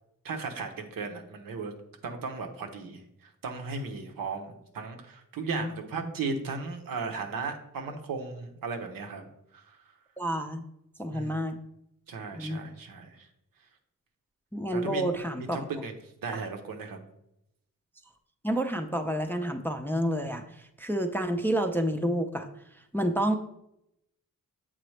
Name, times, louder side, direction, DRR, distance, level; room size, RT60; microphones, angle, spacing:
voice 1, 0.2-1.7 2.0-3.0 3.4-9.2 9.5-9.8 11.1-11.4 12.1-13.3 14.7-15.0 15.5-15.9 16.2-17.0, right 4 dB, 90° right, 4 dB, 0.9 m, -36 dB
voice 2, 10.2-10.6 11.0-11.6 12.3-12.6 14.5-15.6 18.4-20.4 20.8-22.5 22.9-23.4, right 1 dB, 5° left, 5 dB, 0.4 m, -29 dB
7.6 x 3.9 x 3.2 m, 0.81 s
cardioid pair, 85°, 33 cm